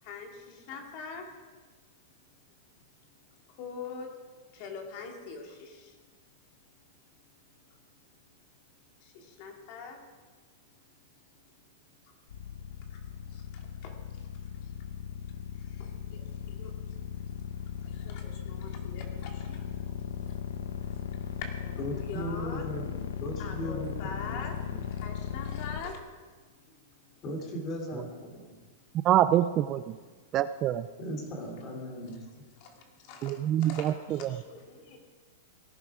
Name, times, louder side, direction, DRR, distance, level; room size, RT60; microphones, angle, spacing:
voice 1, 0.0-1.3 3.5-4.1 4.5-6.0 9.0-10.0 12.0-12.1 12.9-14.3 14.6-14.7 15.5-17.0 17.8-19.7 20.2-20.5 20.9-21.0 21.4-22.7 23.4-24.6 24.9-26.0 32.6-35.0, left 5 dB, 45° left, 3 dB, 2.5 m, -44 dB
sound 1, 12.3-25.8, left 8 dB, 85° left, 1.2 m, -38 dB
voice 2, 21.8-24.9 27.2-28.5 31.0-32.5, equal, 25° left, 1 dB, 3.1 m, -38 dB
voice 3, 29.0-30.0 30.3-30.9 33.2-34.4, right 12 dB, 30° right, 14 dB, 0.3 m, -26 dB
17.5 x 11.0 x 4.9 m, 1.4 s
supercardioid pair, 155°, 0 cm